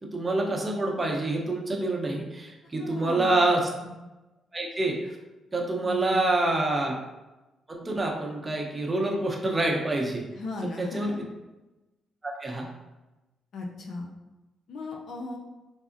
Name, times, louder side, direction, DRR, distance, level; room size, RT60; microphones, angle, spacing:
voice 1, 0.0-3.7 4.5-5.2 5.5-6.9 7.7-10.2 10.8-11.1 12.2-12.7, right 2 dB, 25° right, -1 dB, 0.7 m, -27 dB
voice 2, 2.8-3.4 5.8-6.2 10.3-11.2 13.5-14.1 14.7-15.4, left 2 dB, 65° left, 1 dB, 0.4 m, -36 dB
3.5 x 2.0 x 2.5 m, 1.1 s
supercardioid pair, 55°, 0 cm